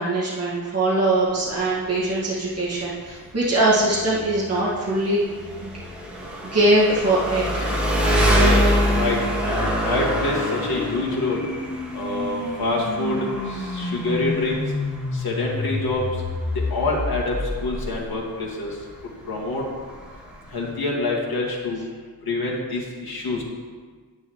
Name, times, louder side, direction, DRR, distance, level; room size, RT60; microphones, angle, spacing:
voice 1, 0.0-5.2 5.6-5.7 6.5-7.7, right 1 dB, 40° right, -7 dB, 1.9 m, -22 dB
Engine, 1.1-20.7, equal, 5° right, 1.8 m, -26 dB
sound 1, 8.1-18.2, left 2 dB, 40° left, 1.1 m, -31 dB
voice 2, 8.4-11.4 11.9-14.7 15.1-16.0 16.7-18.8 19.3-19.6 20.5-21.8 22.3-23.4, left 2 dB, 75° left, -4 dB, 2.1 m, -26 dB
9.7 x 9.4 x 3.2 m, 1.5 s
wide cardioid pair, 105°, 37 cm